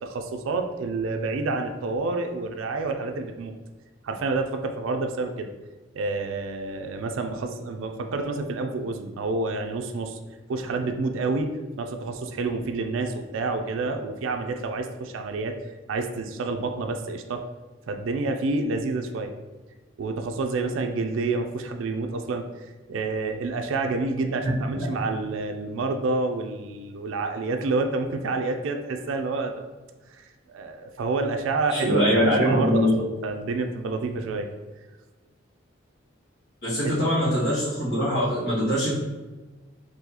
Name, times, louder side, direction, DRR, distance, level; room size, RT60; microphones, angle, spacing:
voice 1, 0.0-3.5 4.0-5.5 5.9-10.2 10.5-11.5 11.8-15.5 15.9-17.5 17.9-19.3 20.0-22.4 22.9-29.5 30.2-34.5 36.8-36.9, right 3 dB, 85° right, 5 dB, 0.4 m, -28 dB
voice 2, 31.7-32.9 36.6-38.9, equal, 60° left, -9 dB, 1.3 m, -23 dB
3.8 x 2.7 x 2.8 m, 1.2 s
head